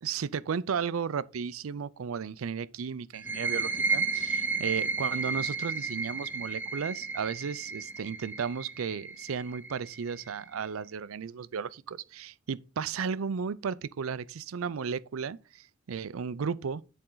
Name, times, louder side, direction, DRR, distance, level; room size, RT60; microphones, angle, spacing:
voice 1, 0.0-16.8, right 6 dB, 90° right, 0.5 m, -34 dB
sound 1, 3.1-10.5, right 4 dB, 10° right, 0.6 m, -33 dB
10.0 x 4.4 x 3.8 m
head